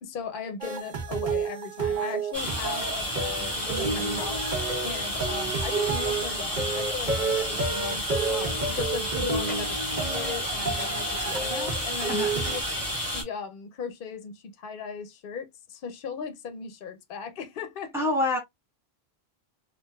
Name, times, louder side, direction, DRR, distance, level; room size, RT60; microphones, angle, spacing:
voice 1, 0.0-4.4 4.8-12.6 13.0-17.9, left 6 dB, 60° left, 0.8 m, -38 dB
sound 1, 0.6-12.6, right 4 dB, 50° right, 1.1 m, -31 dB
sound 2, 2.3-13.2, equal, 30° right, 1.9 m, -31 dB
voice 2, 17.9-18.4, left 2 dB, 5° right, 1.9 m, -25 dB
4.5 x 2.6 x 2.2 m
omnidirectional pair, 1.1 m